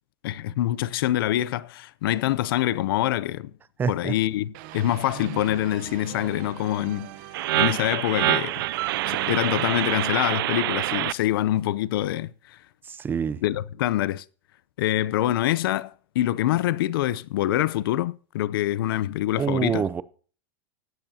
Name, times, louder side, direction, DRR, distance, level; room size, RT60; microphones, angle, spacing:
voice 1, 0.2-3.5 3.9-7.1 7.5-8.6 9.1-12.6 13.4-14.2 14.8-19.9, left 13 dB, 70° left, 0.6 m, -25 dB
voice 2, 3.8-4.2 12.9-13.4 19.4-20.0, right 6 dB, 15° right, 0.5 m, -26 dB
sound 1, 4.5-11.5, right 16 dB, 50° right, 1.0 m, -42 dB
sound 2, 7.3-11.1, right 16 dB, 75° right, 0.5 m, -26 dB
16.0 x 12.0 x 2.8 m
supercardioid pair, 145°, 12 cm